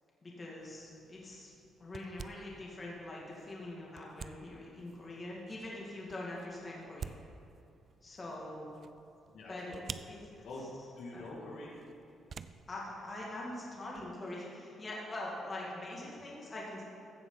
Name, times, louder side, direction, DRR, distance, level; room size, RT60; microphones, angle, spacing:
voice 1, 0.2-1.5 1.8-7.2 8.0-8.7 9.5-9.8 10.1-10.4 11.1-11.2 12.7-16.8, left 1 dB, 30° left, -4 dB, 2.3 m, -43 dB
sound 1, 0.6-14.2, right 6 dB, 50° right, 0.4 m, -52 dB
voice 2, 9.3-9.9 10.4-11.9 16.0-16.2, left 2 dB, 70° left, -3 dB, 2.2 m, -46 dB
15.0 x 6.9 x 4.0 m, 2.7 s
cardioid pair, 90°, 0 cm